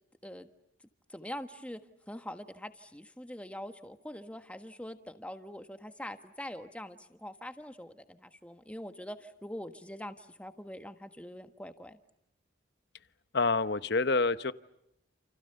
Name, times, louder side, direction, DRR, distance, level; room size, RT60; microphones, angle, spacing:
voice 1, 1.1-1.8 2.1-12.0, left 1 dB, 5° left, 8 dB, 1.5 m, -44 dB
voice 2, 13.3-14.5, left 3 dB, 55° left, 13 dB, 1.0 m, -27 dB
29.5 x 29.0 x 6.9 m, 0.80 s
head